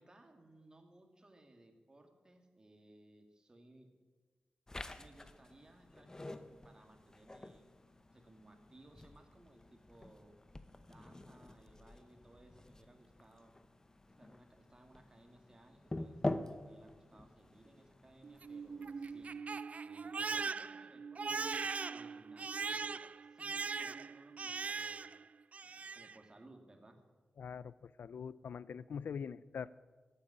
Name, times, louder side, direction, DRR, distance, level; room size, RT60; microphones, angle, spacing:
voice 1, 0.0-3.9 5.0-7.6 8.1-10.4 10.9-13.5 14.2-19.3 19.8-21.4 21.9-23.0 23.3-25.1 25.6-27.0, right 1 dB, 25° right, 4 dB, 2.1 m, -62 dB
sound 1, 4.7-19.4, left 2 dB, 20° left, 0.7 m, -47 dB
Crying sobbing, 18.2-25.2 25.5-26.2, right 5 dB, 50° right, 0.4 m, -40 dB
voice 2, 27.4-29.7, left 7 dB, 85° left, 19 dB, 0.4 m, -43 dB
14.0 x 8.8 x 9.9 m, 1.4 s
wide cardioid pair, 125°, 3 cm